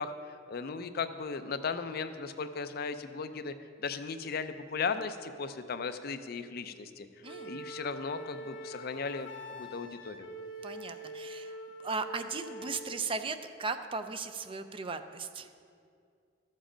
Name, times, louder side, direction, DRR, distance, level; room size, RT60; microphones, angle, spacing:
voice 1, 0.0-3.5 3.8-7.1 7.4-9.3 9.6-10.3, left 5 dB, 55° left, 10 dB, 0.5 m, -36 dB
Wind instrument woodwind instrument, 7.2-13.1, right 1 dB, 80° left, 0.8 m, -44 dB
voice 2, 7.2-7.6 10.6-15.5, right 4 dB, 30° right, 9 dB, 0.4 m, -37 dB
12.5 x 7.4 x 5.0 m, 2.3 s
head